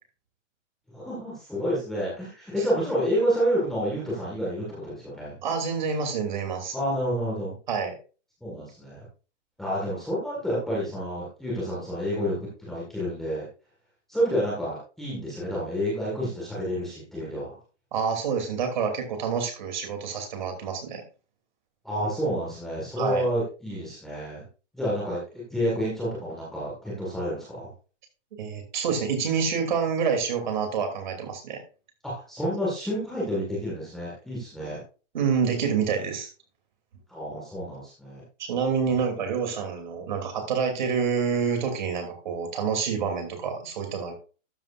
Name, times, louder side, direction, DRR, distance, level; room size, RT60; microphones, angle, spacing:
voice 1, 0.9-5.4 6.7-7.5 8.4-9.0 9.6-12.3 12.6-13.5 14.1-17.6 21.8-24.4 24.7-27.7 32.0-34.8 37.1-38.2, equal, ahead, -7 dB, 1.7 m, -29 dB
voice 2, 5.4-6.7 7.7-7.9 17.9-21.0 23.0-23.3 28.4-31.6 34.6-34.8 35.1-36.3 38.4-44.1, right 6 dB, 40° right, 4 dB, 2.9 m, -27 dB
12.5 x 7.4 x 2.5 m, 0.35 s
hypercardioid pair, 175°, 37 cm